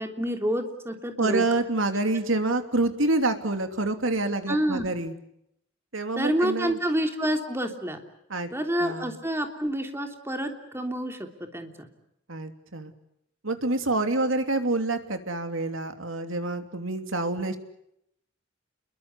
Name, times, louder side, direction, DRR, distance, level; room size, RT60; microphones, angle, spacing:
voice 1, 0.0-1.4 4.5-4.9 6.2-8.0 8.5-11.9, equal, 10° right, 4 dB, 3.2 m, -28 dB
voice 2, 1.2-5.1 5.9-6.8 8.3-8.5 8.8-9.1 12.3-12.9 13.4-17.6, right 2 dB, 75° right, 7 dB, 2.9 m, -27 dB
29.5 x 22.5 x 8.4 m, 0.78 s
head